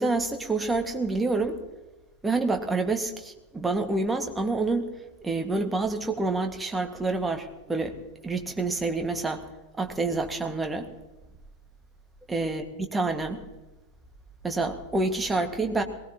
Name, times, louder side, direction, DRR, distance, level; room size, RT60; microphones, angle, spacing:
voice 1, 0.0-1.6 2.2-4.9 5.2-8.0 8.2-9.4 9.8-10.9 12.3-13.4 14.4-15.8, right 3 dB, 10° right, 4 dB, 1.8 m, -27 dB
22.0 x 19.0 x 3.0 m, 1.1 s
figure-of-eight pair, 90°, 0 cm